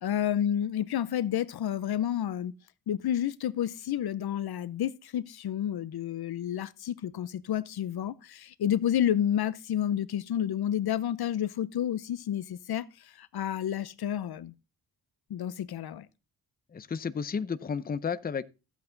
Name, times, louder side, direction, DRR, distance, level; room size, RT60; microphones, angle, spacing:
voice 1, 0.0-2.5 2.9-12.8 13.2-14.5 15.3-16.1, left 10 dB, 75° left, 0.7 m, -30 dB
voice 2, 16.7-18.4, left 6 dB, 25° left, 0.6 m, -32 dB
14.5 x 8.3 x 3.8 m
wide cardioid pair, 140°, 39 cm